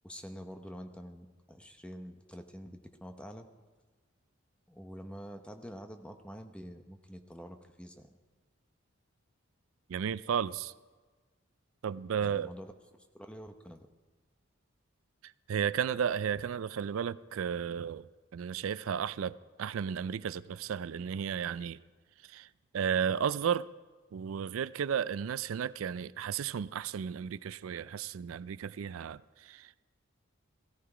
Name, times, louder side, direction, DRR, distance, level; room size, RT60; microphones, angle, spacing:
voice 1, 0.0-3.5 4.7-8.2 12.2-12.7 13.1-13.8, equal, 5° left, 0.8 m, -47 dB
voice 2, 9.9-10.7 11.8-12.5 15.5-18.1 18.3-21.8 22.3-22.5 22.7-23.7 24.1-29.8, right 7 dB, 85° right, 0.4 m, -33 dB
16.5 x 14.0 x 4.9 m
head